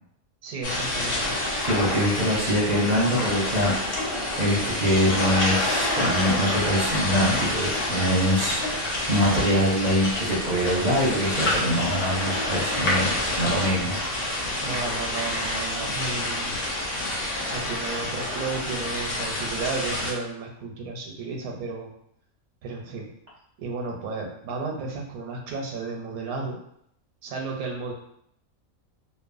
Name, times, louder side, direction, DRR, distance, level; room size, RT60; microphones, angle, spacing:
voice 1, 0.4-1.4 14.6-16.6 17.4-21.9 22.6-23.1 23.6-26.6 27.2-27.9, right 4 dB, 90° right, 1 dB, 1.1 m, -33 dB
sound 1, 0.6-20.1, left 1 dB, 85° left, 1.3 m, -28 dB
voice 2, 1.6-3.7 4.4-13.1 13.4-14.0, equal, 45° right, -5 dB, 0.5 m, -24 dB
2.9 x 2.1 x 2.5 m, 0.71 s
omnidirectional pair, 1.5 m